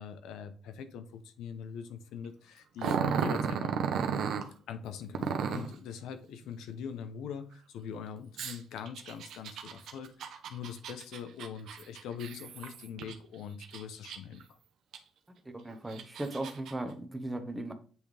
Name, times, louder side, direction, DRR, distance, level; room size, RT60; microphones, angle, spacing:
voice 1, 0.0-3.7 4.7-14.6, left 7 dB, 85° left, 0.7 m, -42 dB
Growling, 2.8-4.5 5.1-5.7 8.4-13.1 13.6-14.4 14.9-15.0 15.7-16.7, right 7 dB, 75° right, 0.8 m, -34 dB
voice 2, 15.4-17.7, right 1 dB, 15° right, 1.1 m, -37 dB
8.1 x 3.4 x 3.4 m
cardioid pair, 90°, 0 cm